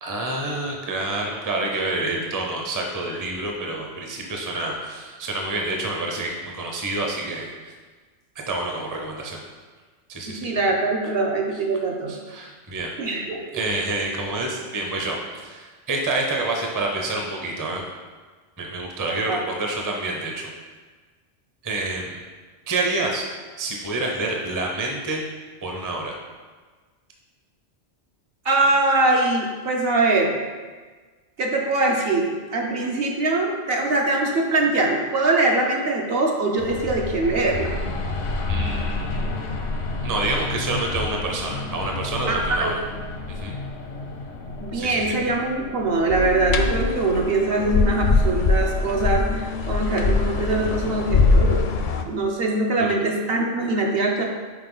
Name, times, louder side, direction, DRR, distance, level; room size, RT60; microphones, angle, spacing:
voice 1, 0.0-7.5 8.5-9.4 10.1-10.4 12.1-12.9 13.5-17.8 18.6-20.5 21.6-22.2 22.7-23.2 23.6-25.2 25.6-26.1 38.5-39.4 40.0-42.8 43.3-43.5 44.7-45.0 52.8-53.0, right 2 dB, 20° right, 0 dB, 0.6 m, -28 dB
voice 2, 10.3-12.2 13.0-13.4 19.3-19.4 28.4-30.3 31.4-37.7 42.3-42.7 44.6-51.7 52.1-54.2, right 2 dB, 60° right, 0 dB, 0.9 m, -22 dB
sound 1, 36.6-51.2, left 2 dB, 90° left, 1.1 m, -32 dB
sound 2, 46.1-52.0, left 3 dB, 60° left, 0.5 m, -22 dB
5.9 x 4.5 x 3.9 m, 1.4 s
omnidirectional pair, 1.2 m